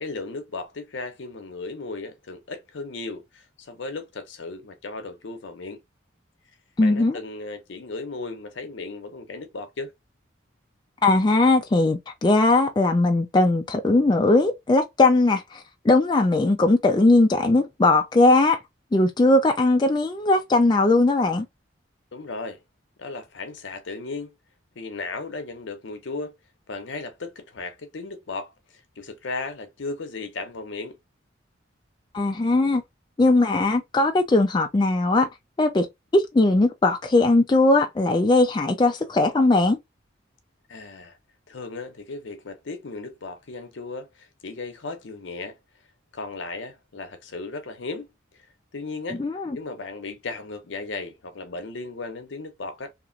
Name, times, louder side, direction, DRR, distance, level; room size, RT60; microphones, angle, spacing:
voice 1, 0.0-5.8 6.8-9.9 22.1-22.6 23.0-24.3 24.8-26.3 26.7-28.5 29.0-31.0 40.7-41.2 41.5-45.6 46.1-48.1 48.7-49.2 49.5-52.9, left 3 dB, 75° left, 0.7 m, -35 dB
voice 2, 6.8-7.2 11.0-18.6 18.9-21.5 32.1-32.8 33.2-35.3 35.6-35.9 36.1-39.8 49.2-49.6, left 2 dB, 25° left, 0.3 m, -19 dB
2.9 x 2.4 x 2.5 m
head